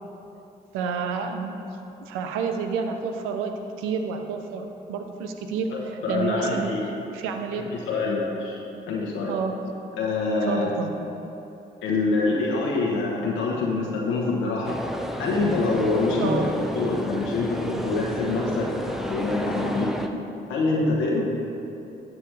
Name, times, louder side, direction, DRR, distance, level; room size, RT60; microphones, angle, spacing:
voice 1, 0.7-1.5 2.0-7.7 9.3-9.6 10.5-10.9 16.2-16.5, right 5 dB, 90° right, 5 dB, 0.6 m, -29 dB
voice 2, 5.7-6.8 7.5-8.6 8.9-9.4 10.0-10.7 11.8-14.8 15.2-20.2 20.5-21.2, left 3 dB, 85° left, -3 dB, 1.0 m, -25 dB
sound 1, 14.6-20.1, equal, ahead, 0.7 m, -32 dB
12.0 x 7.1 x 3.3 m, 2.9 s
hypercardioid pair, 45°, 20 cm